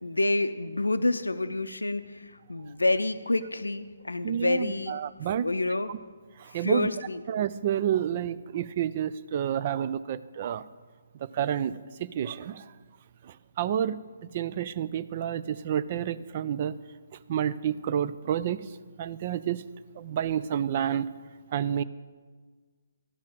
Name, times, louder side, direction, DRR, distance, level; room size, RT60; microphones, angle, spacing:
voice 1, 0.0-5.1 5.4-5.9 6.6-7.2, left 2 dB, 85° left, 11 dB, 0.5 m, -28 dB
voice 2, 4.2-5.5 5.9-6.0 6.4-6.9 7.3-10.6 11.2-11.7 12.0-12.6 13.6-14.0 14.3-16.8 17.3-18.7 19.0-19.6 20.0-21.1 21.5-21.8, right 9 dB, 40° right, 15 dB, 0.4 m, -29 dB
12.5 x 5.7 x 7.7 m, 1.5 s
figure-of-eight pair, 140°, 0 cm